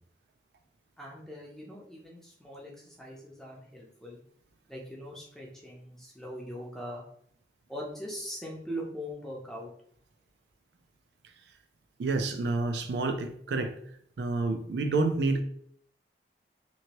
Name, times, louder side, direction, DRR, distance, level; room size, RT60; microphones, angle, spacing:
voice 1, 1.0-4.2 4.7-7.0 7.7-9.7, equal, 5° left, -3 dB, 0.6 m, -41 dB
voice 2, 12.0-13.8 14.2-15.4, right 3 dB, 75° right, 7 dB, 0.4 m, -28 dB
2.9 x 2.6 x 2.8 m, 0.64 s
head